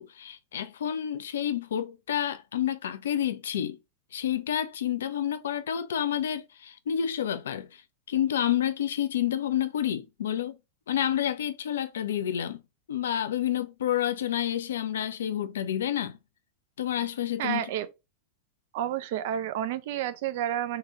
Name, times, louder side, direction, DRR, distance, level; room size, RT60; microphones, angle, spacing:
voice 1, 0.0-3.8 4.1-7.7 8.1-10.6 10.9-12.6 12.9-16.2 16.8-17.6, left 10 dB, 65° left, 0.4 m, -29 dB
voice 2, 17.4-17.9 18.7-20.8, right 11 dB, 50° right, 0.4 m, -30 dB
3.6 x 2.3 x 2.9 m
figure-of-eight pair, 90°, 0 cm